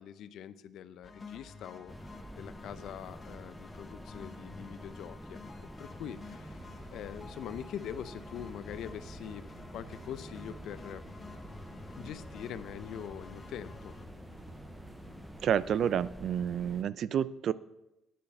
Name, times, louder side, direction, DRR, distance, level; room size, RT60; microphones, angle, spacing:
voice 1, 0.0-5.4 5.8-6.6 6.9-9.4 9.7-11.0 12.0-13.9, left 9 dB, 70° left, 13 dB, 0.5 m, -43 dB
sound 1, 1.0-14.1, left 4 dB, 25° left, 1.0 m, -51 dB
sound 2, 1.9-16.8, equal, ahead, 0.6 m, -48 dB
sound 3, 6.0-15.5, right 2 dB, 80° right, 3.9 m, -54 dB
voice 2, 15.4-17.5, right 9 dB, 60° right, 18 dB, 0.4 m, -29 dB
9.3 x 8.6 x 5.4 m, 0.92 s
cardioid pair, 105°, 0 cm